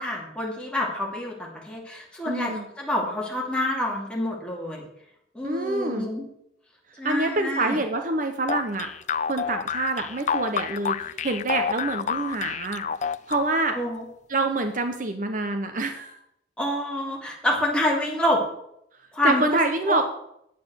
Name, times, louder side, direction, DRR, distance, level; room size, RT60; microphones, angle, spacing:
voice 1, 0.0-4.9 5.3-6.2 7.0-7.8 13.7-14.0 16.6-18.4 19.1-19.6 19.9-20.0, left 1 dB, 5° left, -2 dB, 2.6 m, -27 dB
voice 2, 2.3-2.6 5.4-6.1 7.0-8.9 9.3-12.9 13.3-13.8 14.3-16.2 19.2-20.0, right 2 dB, 45° right, 6 dB, 0.9 m, -26 dB
sound 1, 8.5-13.8, left 7 dB, 40° left, 0.4 m, -29 dB
9.4 x 8.5 x 6.3 m, 0.76 s
head